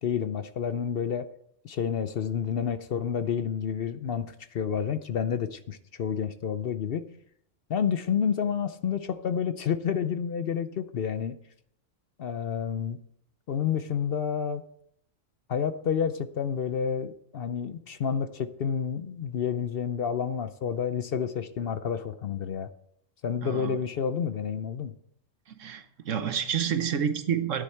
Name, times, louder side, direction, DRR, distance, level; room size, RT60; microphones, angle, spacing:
voice 1, 0.0-1.3 1.6-7.0 7.7-11.4 12.2-13.0 13.5-14.6 15.5-22.7 23.2-24.9, left 7 dB, 55° left, 11 dB, 0.7 m, -29 dB
voice 2, 23.4-23.8 25.5-27.6, right 8 dB, 80° right, 9 dB, 1.4 m, -29 dB
13.5 x 10.0 x 4.4 m, 0.71 s
omnidirectional pair, 1.3 m